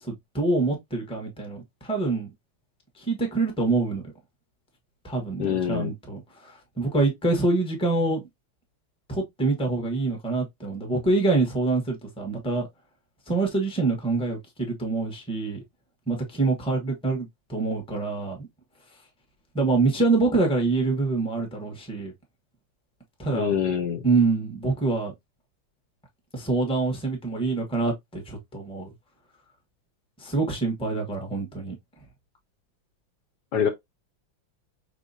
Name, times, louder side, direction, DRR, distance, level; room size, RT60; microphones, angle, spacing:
voice 1, 0.0-2.3 3.0-4.0 5.0-8.2 9.1-12.7 13.3-15.6 16.1-18.4 19.5-22.1 23.2-23.5 24.0-25.1 26.3-28.9 30.2-31.7, right 3 dB, 5° left, 1.0 m, -25 dB
voice 2, 5.4-5.9 23.3-24.0 33.5-33.7, left 8 dB, 65° left, 1.2 m, -25 dB
5.1 x 3.4 x 2.7 m
omnidirectional pair, 2.1 m